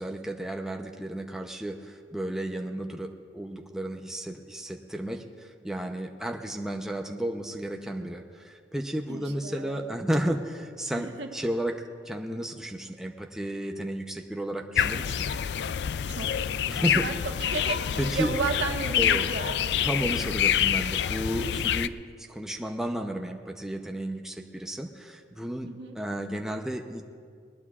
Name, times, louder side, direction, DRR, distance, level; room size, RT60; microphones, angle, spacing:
voice 1, 0.0-15.3 16.7-17.1 18.0-18.3 19.0-19.2 19.8-25.7 25.9-27.0, right 1 dB, 5° right, 2 dB, 0.7 m, -33 dB
voice 2, 9.1-9.8 10.9-11.3 16.1-16.5 16.9-19.7 25.6-26.0, right 3 dB, 85° right, 3 dB, 1.3 m, -34 dB
sound 1, 14.8-21.9, left 9 dB, 65° left, 0.4 m, -27 dB
20.0 x 20.0 x 2.4 m, 2.1 s
head